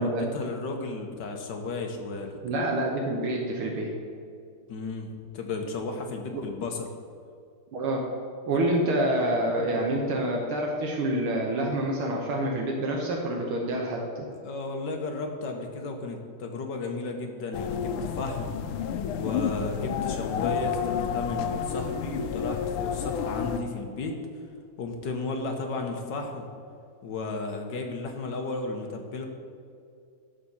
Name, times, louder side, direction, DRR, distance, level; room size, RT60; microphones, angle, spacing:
voice 1, 0.0-2.4 4.7-6.9 14.4-18.5 19.1-24.2 24.8-26.4 27.0-29.2, left 3 dB, 60° left, 3 dB, 1.5 m, -34 dB
voice 2, 2.4-3.9 6.3-6.4 7.7-8.1 8.5-14.3, right 1 dB, 75° right, -1 dB, 1.9 m, -27 dB
sound 1, 17.5-23.6, left 8 dB, 90° left, 1.5 m, -30 dB
11.5 x 4.2 x 7.0 m, 2.4 s
omnidirectional pair, 2.4 m